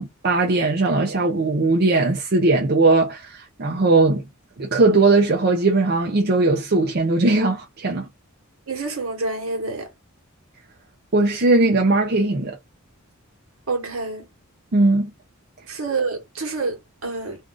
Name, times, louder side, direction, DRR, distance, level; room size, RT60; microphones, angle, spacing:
voice 1, 0.0-4.2 4.6-8.1 11.1-12.6 14.7-15.1, right 3 dB, 50° right, 0.6 m, -19 dB
voice 2, 8.7-9.9 13.7-14.2 15.7-17.4, right 3 dB, 70° right, 1.3 m, -27 dB
2.6 x 2.4 x 3.5 m
head